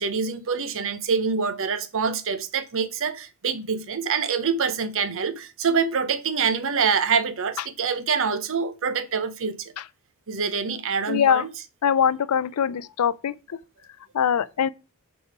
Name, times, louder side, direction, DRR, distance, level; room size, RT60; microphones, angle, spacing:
voice 1, 0.0-9.7 10.3-11.5, right 5 dB, 65° right, 0.8 m, -25 dB
voice 2, 11.1-11.4 11.8-13.3 14.1-14.7, left 8 dB, 85° left, 0.4 m, -22 dB
8.1 x 4.2 x 4.7 m
head